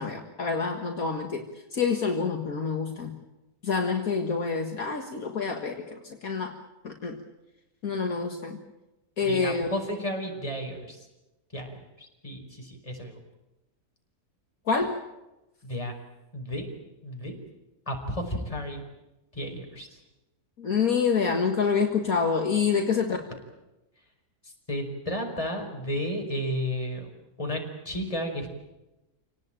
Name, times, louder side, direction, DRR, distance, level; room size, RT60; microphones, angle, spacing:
voice 1, 0.0-1.4 1.7-3.2 3.6-6.6 6.8-7.2 7.8-8.6 9.2-9.7 14.7-15.0 20.6-23.2, left 5 dB, 60° left, 3 dB, 2.2 m, -27 dB
voice 2, 9.2-11.0 11.5-13.2 15.6-15.9 16.3-16.7 17.0-17.3 17.9-18.8 19.3-19.9 24.7-27.1 27.4-28.5, equal, 20° left, 2 dB, 5.0 m, -33 dB
27.5 x 18.5 x 9.0 m, 0.99 s
omnidirectional pair, 1.7 m